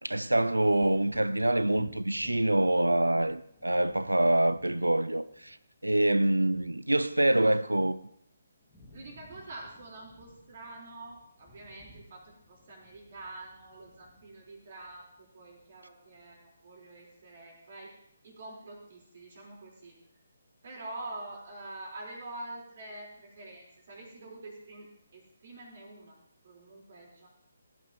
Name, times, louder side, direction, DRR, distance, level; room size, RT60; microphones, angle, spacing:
voice 1, 0.0-5.6 5.8-8.0, right 1 dB, 85° right, 0.5 m, -25 dB
Wind / Thunder, 0.7-8.3 8.5-15.8 16.2-16.3, left 2 dB, 15° left, 2.9 m, -55 dB
voice 2, 8.9-18.0 18.2-20.0 20.6-26.2 26.4-27.3, right 2 dB, 45° right, 4.3 m, -46 dB
17.0 x 9.3 x 3.1 m
figure-of-eight pair, 140°, 0 cm